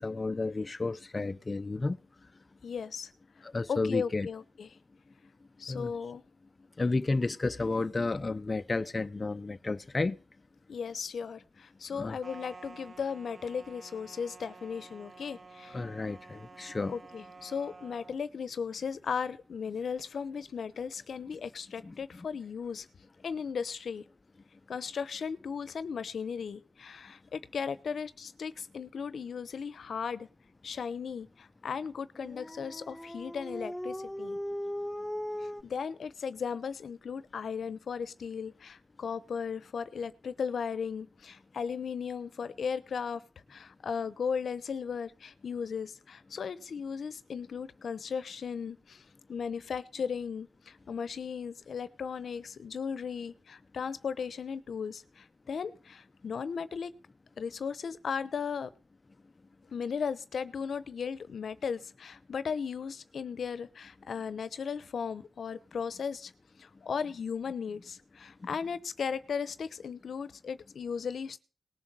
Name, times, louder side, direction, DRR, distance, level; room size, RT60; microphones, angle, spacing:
voice 1, 0.0-2.0 3.4-4.3 5.7-5.9 6.8-10.2 11.9-12.2 15.7-17.0 21.8-22.3, left 3 dB, 40° left, 0.7 m, -32 dB
voice 2, 2.6-3.1 3.7-4.7 5.6-6.2 10.7-15.8 16.9-22.9 23.2-24.0 24.7-30.3 30.6-34.4 35.4-43.2 43.5-49.0 49.3-56.9 57.4-58.7 59.7-66.3 66.6-71.4, left 6 dB, 75° left, 0.9 m, -36 dB
sound 1, 12.2-18.2, right 3 dB, 55° right, 1.1 m, -51 dB
Dog, 32.2-35.6, equal, 15° left, 0.9 m, -38 dB
19.0 x 7.2 x 7.6 m
cardioid pair, 45°, 0 cm